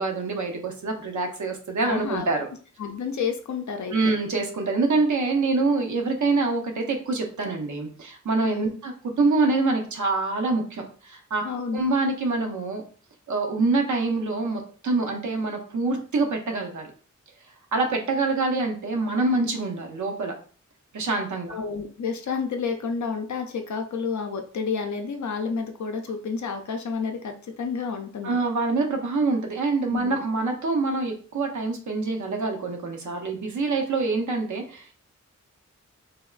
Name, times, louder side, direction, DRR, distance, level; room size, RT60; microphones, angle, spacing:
voice 1, 0.0-2.5 3.9-11.4 11.7-12.8 13.3-16.9 17.7-20.4 20.9-21.6 28.2-34.9, right 3 dB, 75° right, 2 dB, 0.7 m, -25 dB
voice 2, 1.8-2.3 2.8-4.2 8.4-8.7 11.4-11.8 21.5-28.4 29.9-30.2, left 5 dB, 70° left, 4 dB, 0.5 m, -30 dB
3.4 x 2.2 x 2.4 m, 0.42 s
wide cardioid pair, 70°, 30 cm